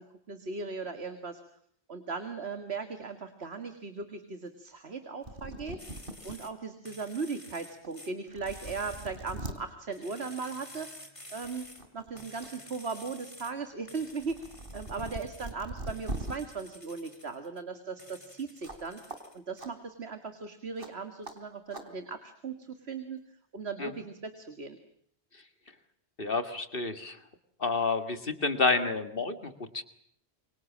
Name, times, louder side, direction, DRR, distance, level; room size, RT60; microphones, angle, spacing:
voice 1, 0.0-1.4 1.9-5.8 6.2-11.7 11.9-14.4 14.7-19.0 19.3-23.2 23.5-24.8, right 4 dB, 75° right, 8 dB, 2.2 m, -38 dB
sound 1, 5.0-5.1 5.2-6.4 6.9-7.0 7.8-7.9 8.3-9.6 10.8-11.0 11.4-12.5 12.8-16.3 18.6-18.8 19.1-19.2 19.6-19.7 20.8-20.9 21.2-21.4 21.7-21.9, right 2 dB, 55° right, 3.5 m, -41 dB
sound 2, 5.8-6.5 6.8-8.1 8.5-9.4 9.9-11.9 12.2-13.5 13.9-15.5 15.9-17.6 18.0-19.6, left 1 dB, 30° left, 3.4 m, -51 dB
voice 2, 26.2-27.2 27.6-29.8, left 3 dB, 55° left, 10 dB, 2.0 m, -29 dB
28.0 x 24.0 x 7.3 m, 0.67 s
omnidirectional pair, 1.1 m